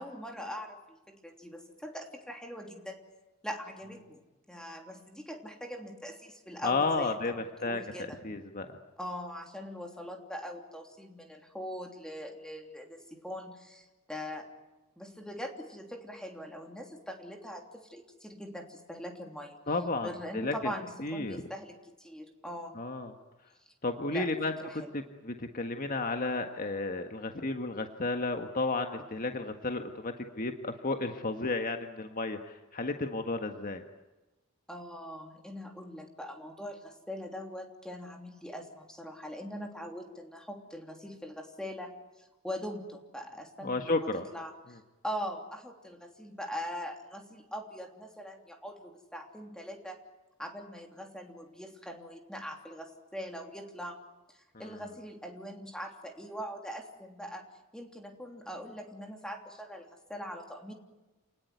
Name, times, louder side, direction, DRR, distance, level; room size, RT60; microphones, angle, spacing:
voice 1, 0.0-3.0 3.4-4.2 4.5-8.2 9.0-14.5 15.0-19.6 20.0-22.8 24.1-24.3 24.6-24.9 34.7-44.8 45.0-50.0 50.4-54.0 54.3-57.5 57.7-60.7, equal, 5° left, 3 dB, 3.1 m, -42 dB
voice 2, 6.6-7.8 8.2-8.8 19.7-20.1 20.3-20.7 21.0-21.4 22.8-23.1 23.8-33.8 43.6-44.2 54.5-54.8, left 3 dB, 40° left, 5 dB, 1.6 m, -32 dB
29.0 x 19.5 x 9.4 m, 1.1 s
head